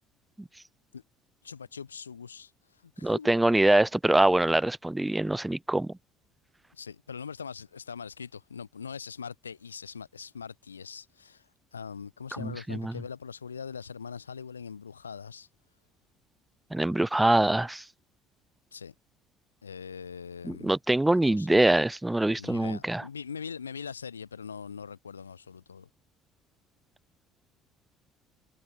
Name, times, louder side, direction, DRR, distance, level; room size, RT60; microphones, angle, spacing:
voice 1, 1.4-2.5 2.8-3.3 6.7-11.4 11.7-15.5 18.7-18.9 19.6-20.7 21.2-21.5 22.3-25.9, left 6 dB, 80° left, 1.3 m, -42 dB
voice 2, 3.0-5.9 12.4-12.9 16.7-17.8 20.4-23.0, right 1 dB, 10° right, 0.4 m, -24 dB
figure-of-eight pair, 55°, 0 cm